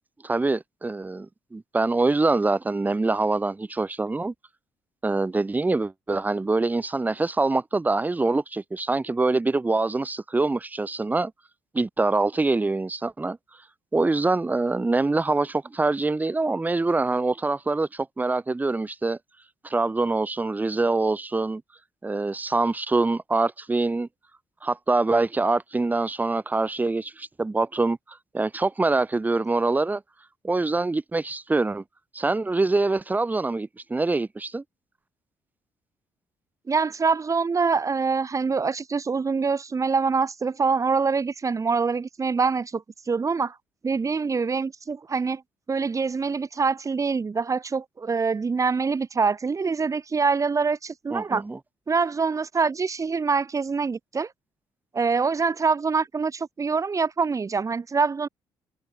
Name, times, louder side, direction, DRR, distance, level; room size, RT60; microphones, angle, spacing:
voice 1, 0.2-4.3 5.0-11.3 11.7-13.4 13.9-19.2 19.6-21.6 22.0-24.1 24.6-30.0 30.4-31.8 32.1-34.6 51.1-51.6, right 3 dB, 20° right, 1.0 m, -24 dB
voice 2, 36.7-43.6 43.8-45.4 45.7-51.4 51.9-54.3 54.9-58.3, right 5 dB, 35° right, 5.8 m, -25 dB
supercardioid pair, 70°, 9 cm